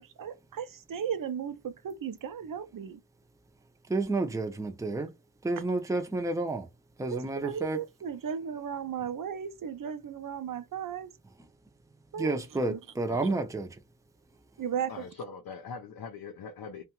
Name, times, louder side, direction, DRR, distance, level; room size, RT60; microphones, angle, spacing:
voice 1, 0.0-3.0 7.1-11.1 12.1-12.4 12.7-12.8 14.6-14.9, right 8 dB, 60° right, 0.5 m, -35 dB
voice 2, 3.9-5.1 5.4-6.7 7.0-7.8 12.2-13.7, right 2 dB, 10° right, 0.5 m, -30 dB
voice 3, 13.1-13.4 14.9-16.8, left 5 dB, 75° left, 0.5 m, -42 dB
2.8 x 2.2 x 2.9 m
wide cardioid pair, 75°, 37 cm